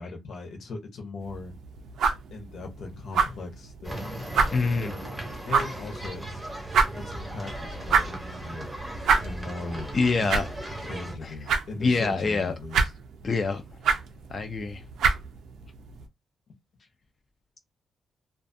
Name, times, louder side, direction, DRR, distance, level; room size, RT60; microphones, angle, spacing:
voice 1, 0.0-1.5 2.3-4.2 4.8-5.0 5.5-6.2 6.9-8.7 9.2-9.9 10.8-12.9, left 3 dB, 60° left, 0.7 m, -38 dB
sound 1, 1.2-16.1, right 5 dB, 80° right, 0.4 m, -30 dB
sound 2, 3.8-11.1, right 1 dB, 10° right, 0.7 m, -37 dB
voice 2, 4.5-4.9 9.9-10.5 11.2-11.3 11.8-12.5 13.2-13.6 14.3-14.8, left 4 dB, 35° left, 0.3 m, -25 dB
2.4 x 2.3 x 2.5 m
wide cardioid pair, 150°, 0 cm